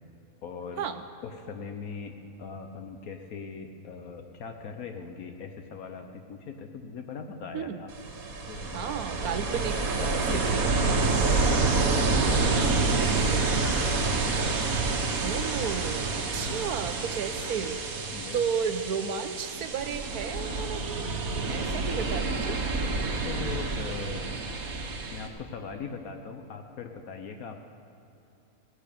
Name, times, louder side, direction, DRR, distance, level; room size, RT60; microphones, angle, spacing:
voice 1, 0.4-0.9 1.2-7.9 8.5-8.9 9.2-9.3 9.9-10.6 11.4-14.3 16.4-16.6 18.1-18.4 21.4-22.3 22.9-24.4 25.1-27.6, left 5 dB, 75° left, 5 dB, 1.3 m, -40 dB
Ocean, 7.9-25.3, right 3 dB, 70° right, 1.7 m, -28 dB
voice 2, 8.7-11.2 15.2-17.9 18.3-21.1 21.4-22.6, right 7 dB, 90° right, 10 dB, 1.4 m, -33 dB
sound 1, 10.7-16.6, right 1 dB, 10° right, 1.2 m, -45 dB
17.0 x 11.5 x 6.8 m, 2.9 s
omnidirectional pair, 1.6 m